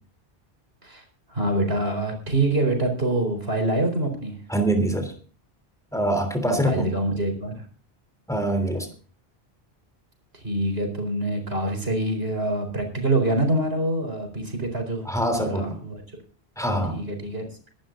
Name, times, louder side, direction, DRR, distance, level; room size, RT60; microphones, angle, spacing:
voice 1, 1.3-4.4 6.4-7.6 10.3-15.1 15.4-16.0 16.9-17.5, right 1 dB, 60° right, 5 dB, 4.6 m, -25 dB
voice 2, 4.5-5.1 5.9-6.9 8.3-8.9 15.1-15.8 16.6-17.0, right 1 dB, 5° left, 7 dB, 3.1 m, -24 dB
23.0 x 11.5 x 2.6 m, 0.40 s
omnidirectional pair, 1.1 m